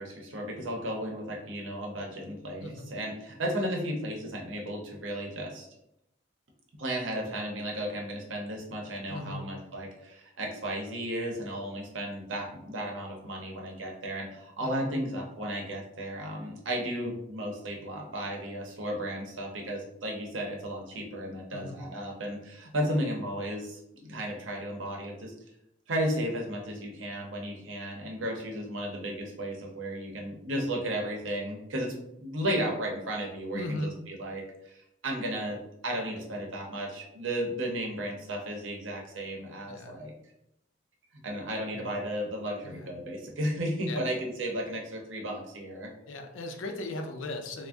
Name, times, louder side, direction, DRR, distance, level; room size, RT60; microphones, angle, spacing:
voice 1, 0.0-5.7 6.8-25.3 25.9-35.6 35.8-40.1 41.2-45.9, right 1 dB, 80° right, 0 dB, 0.7 m, -34 dB
voice 2, 2.6-2.9 9.0-9.5 14.6-14.9 21.5-21.8 33.5-34.0 39.6-40.0 41.7-41.9 42.6-42.9 43.9-44.1 46.1-47.7, left 2 dB, 85° left, 4 dB, 0.5 m, -38 dB
2.5 x 2.1 x 3.4 m, 0.81 s
head